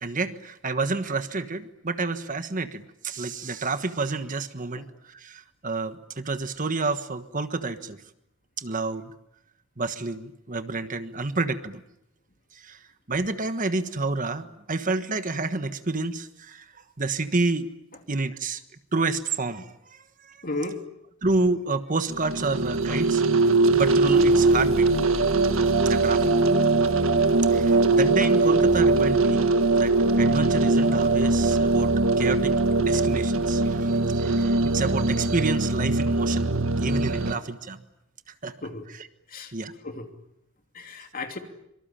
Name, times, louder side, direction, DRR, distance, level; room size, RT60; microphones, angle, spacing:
voice 1, 0.0-8.0 8.6-9.1 9.8-11.8 12.6-12.8 13.1-16.6 17.0-17.7 18.1-18.6 18.9-20.4 21.2-23.2 23.5-24.9 25.8-26.3 27.5-29.5 29.7-36.5 36.7-37.8 38.4-38.5 38.9-39.1 39.5-39.7, right 3 dB, 40° right, 10 dB, 1.4 m, -29 dB
voice 2, 20.4-20.8 38.6-38.8 39.3-39.5 39.8-40.1 40.7-41.4, left 2 dB, 45° left, 5 dB, 2.9 m, -33 dB
sound 1, 22.1-37.3, right 3 dB, 75° right, 1.7 m, -21 dB
25.5 x 24.5 x 8.9 m, 0.81 s
head